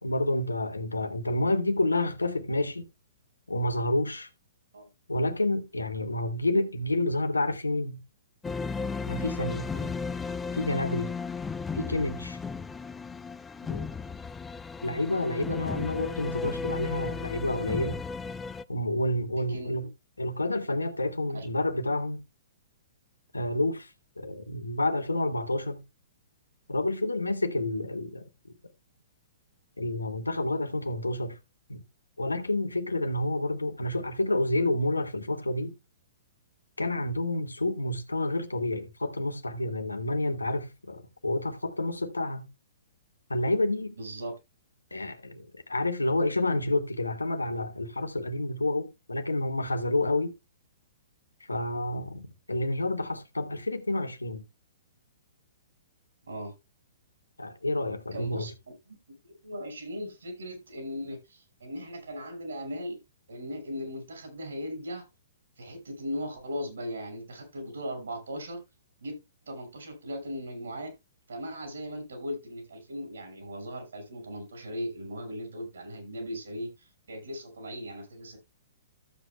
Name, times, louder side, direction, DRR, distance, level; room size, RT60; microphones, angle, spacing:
voice 1, 0.0-2.9 3.5-4.3 5.1-8.0 9.0-9.7 10.5-11.1 11.7-12.4 13.7-13.9 14.8-18.0 18.7-19.9 20.2-22.2 23.3-23.9 24.2-25.8 26.7-28.3 29.8-31.4 31.7-31.8 32.2-35.7 36.8-42.5 43.3-43.9 44.9-50.3 51.5-54.4 57.4-58.5, left 1 dB, 85° left, 1.4 m, -29 dB
sound 1, 8.4-18.6, left 5 dB, 10° left, 0.5 m, -35 dB
voice 2, 44.0-44.4 56.3-56.5 58.1-58.5 58.9-59.0 59.2-63.0 63.3-65.1 65.6-68.6 69.0-69.2 69.4-70.9 71.3-78.4, equal, 70° right, 5.1 m, -38 dB
14.0 x 8.0 x 2.2 m
figure-of-eight pair, 115°, 0 cm